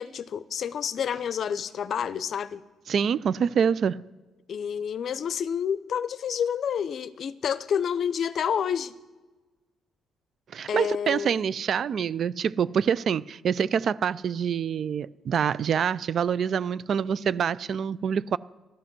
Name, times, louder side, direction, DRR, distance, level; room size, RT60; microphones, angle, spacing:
voice 1, 0.0-2.6 4.5-8.9 10.7-11.4, left 8 dB, 60° left, 0.6 m, -29 dB
voice 2, 2.9-4.0 10.5-18.4, right 7 dB, 60° right, 0.4 m, -26 dB
12.5 x 12.5 x 6.0 m
cardioid pair, 90°, 0 cm